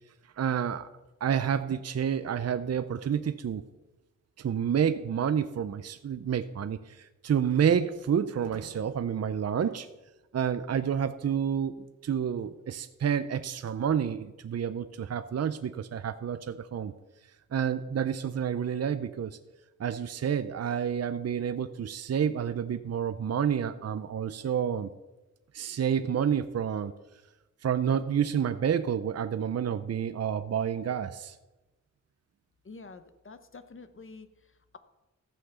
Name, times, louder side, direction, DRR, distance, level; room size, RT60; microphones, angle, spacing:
voice 1, 0.4-0.9 1.2-3.6 4.4-9.9 10.3-16.9 17.5-19.4 19.8-24.9 25.5-26.9 27.6-31.3, right 8 dB, 55° right, 12 dB, 0.6 m, -29 dB
voice 2, 32.6-34.8, left 4 dB, 40° left, 11 dB, 0.9 m, -48 dB
14.5 x 5.8 x 6.8 m, 1.0 s
wide cardioid pair, 105°, 31 cm